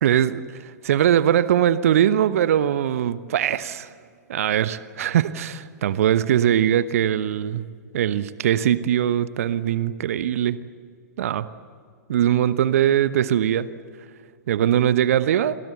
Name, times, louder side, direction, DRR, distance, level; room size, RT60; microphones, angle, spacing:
voice 1, 0.0-0.4 0.8-3.9 4.3-7.6 7.9-10.6 11.2-11.5 12.1-13.7 14.5-15.6, right 10 dB, 55° right, 15 dB, 1.0 m, -21 dB
29.0 x 24.5 x 8.1 m, 2.1 s
figure-of-eight pair, 105°, 9 cm